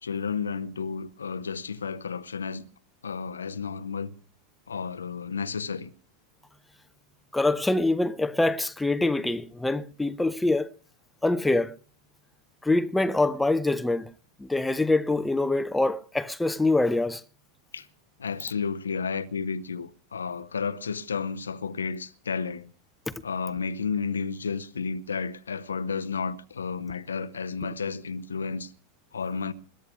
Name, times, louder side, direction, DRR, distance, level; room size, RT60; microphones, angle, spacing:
voice 1, 0.0-2.6 3.0-4.1 4.7-5.9 17.7-17.9 18.2-22.7 23.2-28.7 29.1-29.5, left 5 dB, 70° left, 0.9 m, -32 dB
voice 2, 7.3-10.7 11.2-11.7 12.6-14.1 14.4-17.2, left 2 dB, 5° left, 0.8 m, -24 dB
21.0 x 10.0 x 6.0 m
figure-of-eight pair, 90°, 0 cm